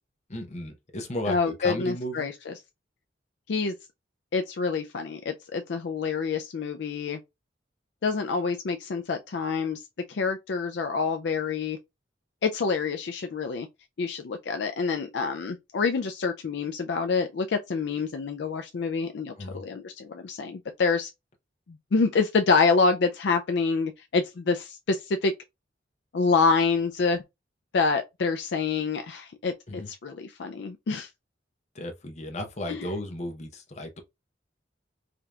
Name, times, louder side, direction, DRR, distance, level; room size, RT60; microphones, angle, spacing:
voice 1, 0.3-2.3 19.4-19.6 29.7-29.9 31.7-34.0, left 1 dB, 40° left, 0.8 m, -35 dB
voice 2, 1.3-2.5 3.5-3.7 4.3-7.2 8.0-9.8 10.1-11.8 12.4-13.7 14.0-21.1 21.9-25.3 26.1-27.2 27.7-31.1 32.7-32.8, left 4 dB, 65° left, 0.4 m, -27 dB
5.0 x 2.8 x 2.3 m
head